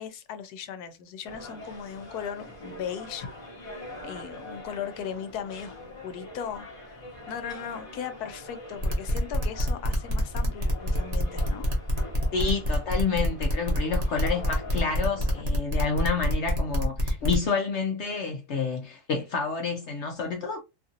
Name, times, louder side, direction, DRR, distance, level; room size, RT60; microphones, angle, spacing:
voice 1, 0.0-5.8 6.0-11.7, left 8 dB, 85° left, 1.1 m, -38 dB
sound 1, 1.2-15.4, left 1 dB, 25° left, 0.8 m, -44 dB
sound 2, 8.8-17.4, left 1 dB, 35° right, 0.7 m, -28 dB
voice 2, 12.3-20.6, left 5 dB, 65° left, 0.7 m, -29 dB
2.8 x 2.5 x 2.7 m
omnidirectional pair, 1.6 m